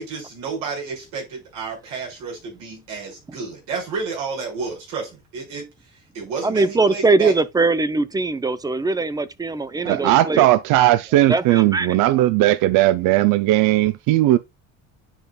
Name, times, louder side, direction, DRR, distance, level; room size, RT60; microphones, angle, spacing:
voice 1, 0.0-5.6 6.1-7.3, right 5 dB, 85° right, 5.3 m, -31 dB
voice 2, 6.4-10.5 11.3-12.0, right 3 dB, 10° right, 0.4 m, -21 dB
voice 3, 9.9-14.4, right 15 dB, 70° right, 0.5 m, -17 dB
10.0 x 5.3 x 2.3 m
cardioid pair, 135°, 33 cm